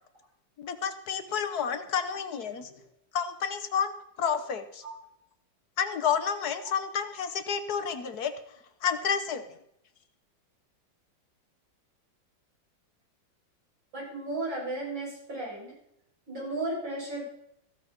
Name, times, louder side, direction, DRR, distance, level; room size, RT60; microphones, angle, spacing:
voice 1, 0.6-2.7 3.1-4.8 5.8-8.3 8.8-9.6, left 7 dB, 60° left, 10 dB, 1.4 m, -30 dB
voice 2, 13.9-15.7 16.3-17.2, right 2 dB, 85° right, -5 dB, 7.9 m, -34 dB
15.0 x 14.0 x 4.3 m, 0.77 s
omnidirectional pair, 2.0 m